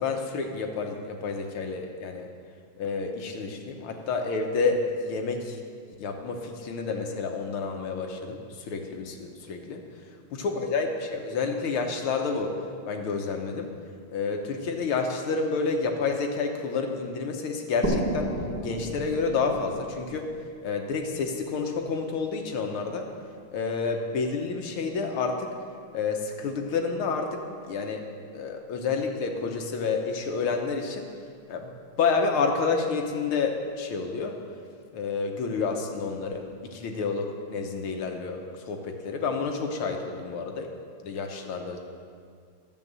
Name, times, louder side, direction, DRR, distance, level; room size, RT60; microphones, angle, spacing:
voice 1, 0.0-2.3 2.8-5.6 6.0-9.8 10.3-12.6 12.9-13.7 14.1-18.3 18.6-20.3 20.6-23.1 23.5-25.5 25.9-28.0 28.3-31.1 31.5-31.7 32.0-34.4 34.9-40.7 41.0-41.8, left 4 dB, 75° left, 4 dB, 1.9 m, -29 dB
sound 1, 17.8-21.3, right 1 dB, 5° left, 1.3 m, -32 dB
11.0 x 7.7 x 7.6 m, 2.2 s
omnidirectional pair, 2.4 m